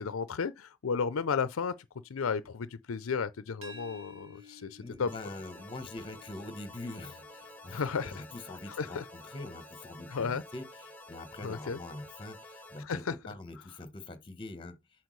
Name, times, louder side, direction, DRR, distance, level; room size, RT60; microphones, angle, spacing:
voice 1, 0.0-1.7 2.1-5.1 7.7-8.1 8.7-9.0 10.1-10.4 11.4-11.8 12.8-13.1, left 5 dB, 75° left, 0.5 m, -33 dB
sound 1, 3.6-9.4, left 1 dB, 85° right, 1.6 m, -55 dB
voice 2, 4.4-14.8, left 2 dB, 25° left, 1.0 m, -44 dB
sound 2, 5.1-12.9, left 1 dB, 5° left, 1.2 m, -50 dB
8.0 x 4.4 x 3.1 m
head